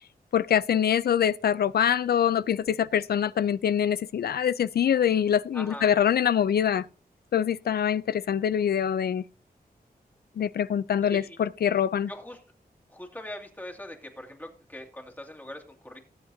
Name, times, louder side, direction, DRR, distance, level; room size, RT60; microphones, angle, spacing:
voice 1, 0.3-6.8 7.3-9.2 10.4-12.1, left 9 dB, 80° left, 0.4 m, -24 dB
voice 2, 5.5-5.9 11.0-11.4 12.1-12.4 12.9-16.0, left 1 dB, 10° left, 2.3 m, -41 dB
18.0 x 7.9 x 2.7 m
cardioid pair, 70°, 16 cm